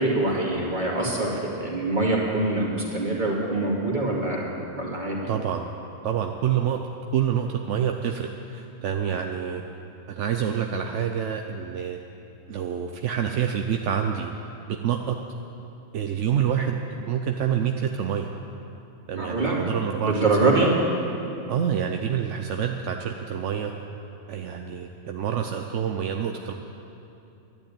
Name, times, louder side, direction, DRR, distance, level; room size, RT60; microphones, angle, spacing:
voice 1, 0.0-4.5 4.8-5.3 19.1-19.6 20.0-20.7, right 2 dB, 40° right, -3 dB, 2.5 m, -24 dB
voice 2, 5.3-5.7 6.0-6.8 7.1-9.6 10.1-12.0 12.5-14.3 14.7-15.2 15.9-18.3 19.1-20.5 21.5-23.7 24.3-26.5, right 8 dB, 80° right, 4 dB, 1.0 m, -27 dB
12.0 x 10.5 x 8.7 m, 2.9 s
omnidirectional pair, 1.2 m